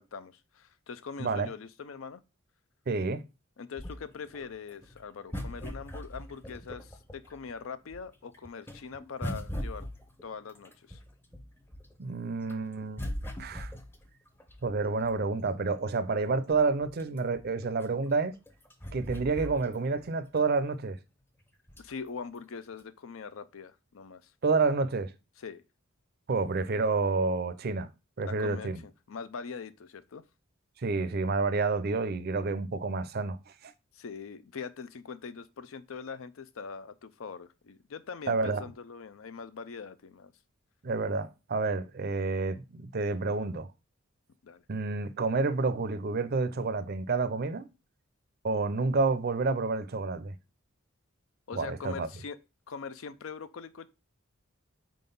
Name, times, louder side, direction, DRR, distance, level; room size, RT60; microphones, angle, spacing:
voice 1, 0.0-2.2 3.6-9.9 10.2-11.0 21.8-24.3 25.4-25.6 28.3-30.2 33.9-40.3 44.4-44.6 51.5-52.4 52.7-53.9, left 5 dB, 75° left, 0.5 m, -42 dB
voice 2, 1.2-1.5 2.9-3.2 12.0-13.0 13.4-13.7 14.6-18.3 18.9-21.0 24.4-25.1 26.3-27.9 28.2-28.8 30.8-33.7 38.3-38.6 40.8-43.7 44.7-47.7 48.4-50.4 51.5-52.1, right 4 dB, 50° right, 0.5 m, -29 dB
sound 1, 3.8-7.5 7.9-12.0 12.4-15.3 15.9-16.0 16.3-20.1 20.4-20.5 21.7-22.1 22.7-22.8, equal, 10° left, 0.7 m, -40 dB
4.6 x 3.9 x 5.3 m
head